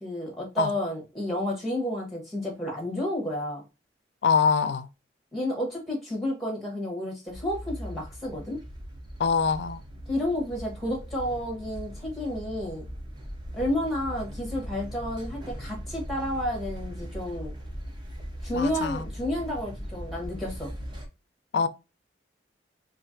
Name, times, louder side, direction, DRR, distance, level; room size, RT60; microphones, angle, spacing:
voice 1, 0.0-3.6 5.3-8.6 10.1-12.8 13.5-17.5 18.4-20.7, left 1 dB, ahead, 1.1 m, -31 dB
voice 2, 4.2-4.9 9.2-9.8 18.5-19.1 21.5-21.7, left 5 dB, 70° left, 0.4 m, -24 dB
sound 1, 7.3-21.1, equal, 25° right, 0.7 m, -39 dB
4.3 x 2.5 x 2.6 m
head